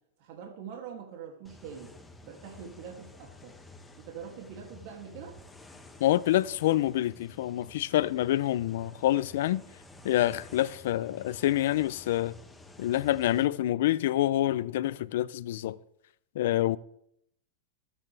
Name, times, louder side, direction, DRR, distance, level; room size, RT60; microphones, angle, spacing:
voice 1, 0.2-2.0 2.2-3.6 4.0-5.4, right 7 dB, 60° right, 2.7 m, -44 dB
sound 1, 1.4-13.5, left 2 dB, 10° left, 1.5 m, -52 dB
voice 2, 6.0-9.6 10.0-12.3 12.8-15.8 16.3-16.8, left 13 dB, 75° left, 0.6 m, -27 dB
22.0 x 9.0 x 3.5 m
supercardioid pair, 130°, 0 cm